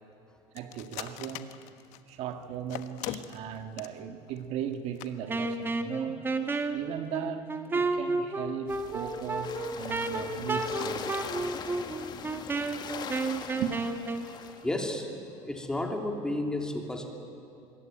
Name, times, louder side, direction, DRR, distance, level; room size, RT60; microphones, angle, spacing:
voice 1, 0.5-1.6 2.1-6.2 6.7-11.3 13.5-13.8, right 9 dB, 55° right, 7 dB, 1.8 m, -37 dB
sound 1, 0.6-2.1 2.7-4.0 4.3-4.4 4.7-4.8 5.0-5.1 5.5-5.7, left 14 dB, 70° left, 1.4 m, -39 dB
Wind instrument woodwind instrument, 5.3-14.3, right 3 dB, 15° right, 1.7 m, -32 dB
sound 2, 8.7-14.8, left 7 dB, 35° left, 1.7 m, -41 dB
voice 2, 14.6-15.1 15.4-17.1, left 1 dB, 5° left, 3 dB, 3.0 m, -32 dB
26.5 x 22.0 x 9.2 m, 2.8 s
cardioid pair, 140°, 13 cm